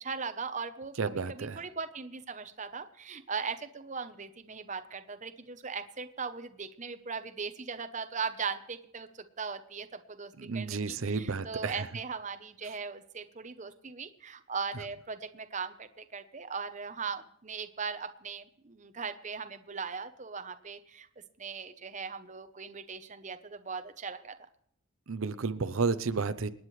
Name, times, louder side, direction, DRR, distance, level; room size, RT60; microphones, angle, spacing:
voice 1, 0.0-9.1 9.4-21.1 21.4-24.3, right 5 dB, 35° right, 10 dB, 0.8 m, -39 dB
voice 2, 1.0-1.6 10.4-11.9 12.6-12.7 25.1-26.5, right 4 dB, 80° right, 12 dB, 0.7 m, -32 dB
27.5 x 9.6 x 3.2 m, 0.70 s
head